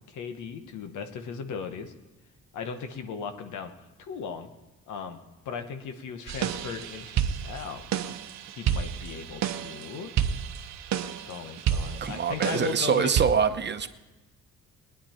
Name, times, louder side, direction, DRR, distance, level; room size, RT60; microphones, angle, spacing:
voice 1, 0.1-1.9 2.5-3.7 4.0-4.5 4.9-5.2 5.4-7.9 8.6-10.1 11.3-13.1, left 6 dB, 75° left, 7 dB, 1.2 m, -37 dB
sound 1, 6.3-13.2, right 9 dB, 65° right, 0.8 m, -30 dB
voice 2, 12.0-13.9, right 7 dB, 35° right, 9 dB, 0.9 m, -25 dB
20.0 x 10.0 x 4.4 m, 1.1 s
cardioid pair, 90°, 30 cm